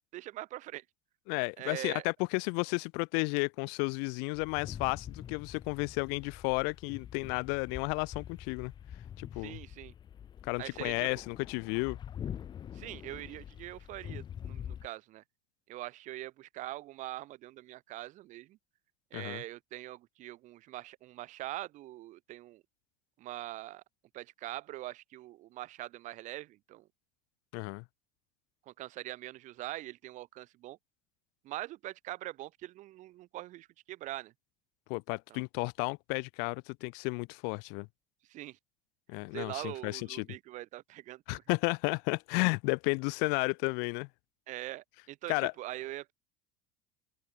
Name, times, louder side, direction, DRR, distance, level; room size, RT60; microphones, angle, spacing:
voice 1, 0.1-0.8 1.6-2.0 9.4-9.9 10.6-11.1 12.7-15.2 15.7-18.6 19.1-22.6 23.2-23.8 24.1-26.9 28.7-30.8 31.4-34.3 35.3-35.4 38.3-38.6 39.3-41.4 44.5-46.1, right 16 dB, 45° right, 1.8 m, -43 dB
voice 2, 1.3-8.7 9.2-9.6 10.4-12.0 19.1-19.4 27.5-27.8 34.9-37.9 39.1-40.3 41.3-44.1 45.3-45.5, left 39 dB, 65° left, 0.6 m, -33 dB
sound 1, 4.3-14.9, left 9 dB, 25° left, 1.0 m, -45 dB
cardioid pair, 170°, 18 cm